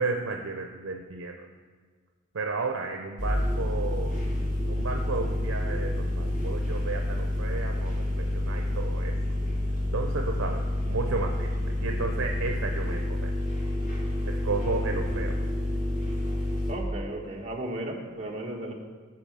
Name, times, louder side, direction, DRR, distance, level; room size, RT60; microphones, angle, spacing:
voice 1, 0.0-1.3 2.3-4.2 4.6-9.1 9.9-13.3 14.3-15.5, right 3 dB, 80° right, 3 dB, 0.6 m, -33 dB
sound 1, 3.2-16.7, left 1 dB, 40° left, 1.8 m, -28 dB
voice 2, 16.7-18.7, right 1 dB, 30° right, -1 dB, 1.2 m, -35 dB
8.6 x 4.8 x 7.3 m, 1.5 s
head